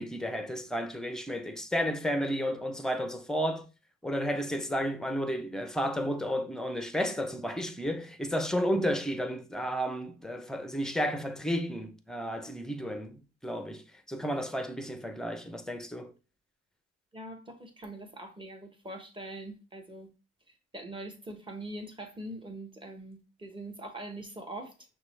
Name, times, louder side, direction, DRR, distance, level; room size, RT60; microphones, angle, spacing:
voice 1, 0.0-3.7 4.0-16.1, equal, ahead, 0.5 m, -32 dB
voice 2, 17.1-20.1 20.7-24.7, right 1 dB, 15° right, 1.1 m, -42 dB
6.0 x 2.3 x 3.2 m
cardioid pair, 90°, 30 cm